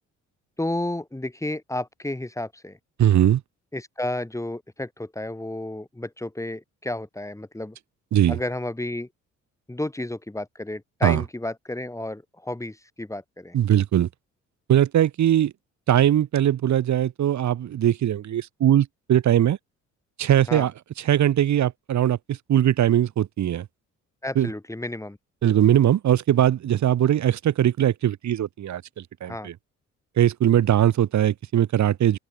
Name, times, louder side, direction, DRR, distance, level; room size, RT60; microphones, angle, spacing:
voice 1, 0.6-2.8 3.7-7.8 8.3-9.1 9.7-13.5 20.5-20.7 24.2-25.2 29.3-29.5, left 1 dB, 10° left, 5.5 m, -32 dB
voice 2, 3.0-3.4 8.1-8.4 11.0-11.2 13.5-14.1 14.7-15.5 15.9-19.6 20.2-20.7 21.1-23.7 24.4-24.5 25.4-28.8 29.2-29.5 30.2-32.2, right 11 dB, 70° right, 3.4 m, -20 dB
open air
cardioid pair, 90°, 30 cm